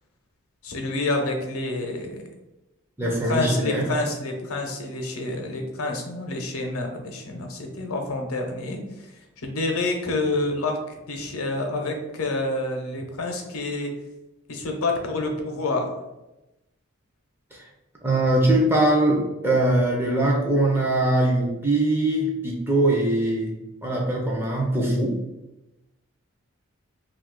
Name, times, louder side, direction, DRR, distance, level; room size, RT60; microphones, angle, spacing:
voice 1, 0.6-2.3 3.0-13.9 14.5-15.9, left 2 dB, 80° left, 3 dB, 0.6 m, -28 dB
voice 2, 3.0-3.9 17.5-17.6 18.0-23.5 23.8-25.2, right 1 dB, 10° right, -2 dB, 0.4 m, -22 dB
2.6 x 2.4 x 3.6 m, 0.97 s
head